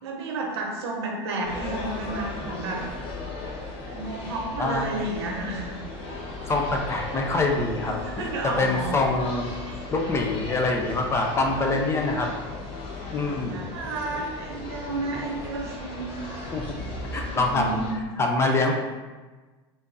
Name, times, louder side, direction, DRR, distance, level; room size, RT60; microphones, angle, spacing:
voice 1, 0.0-2.8 3.9-5.8 7.8-9.0 11.5-12.1 13.5-16.1 17.2-18.0, right 2 dB, 85° right, 0 dB, 0.9 m, -32 dB
sound 1, 1.4-17.9, left 2 dB, 40° left, 1.1 m, -36 dB
voice 2, 4.6-4.9 6.5-9.5 9.9-12.3 13.1-13.7 16.5-16.6 17.0-17.8 18.2-18.8, left 2 dB, 20° left, 2 dB, 0.5 m, -25 dB
3.5 x 2.6 x 3.9 m, 1.3 s
supercardioid pair, 125°, 14 cm